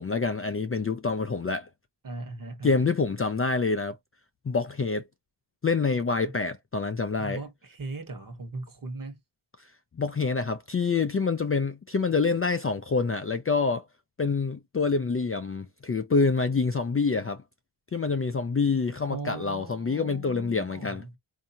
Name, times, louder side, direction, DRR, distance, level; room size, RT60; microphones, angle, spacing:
voice 1, 0.0-1.7 2.6-4.0 4.5-5.1 5.6-7.4 10.0-13.8 14.2-17.4 17.9-21.0, left 4 dB, 30° left, 0.4 m, -26 dB
voice 2, 2.0-2.9 7.2-9.2 19.1-21.1, right 3 dB, 45° right, 1.2 m, -39 dB
4.7 x 2.7 x 2.7 m
wide cardioid pair, 130°, 47 cm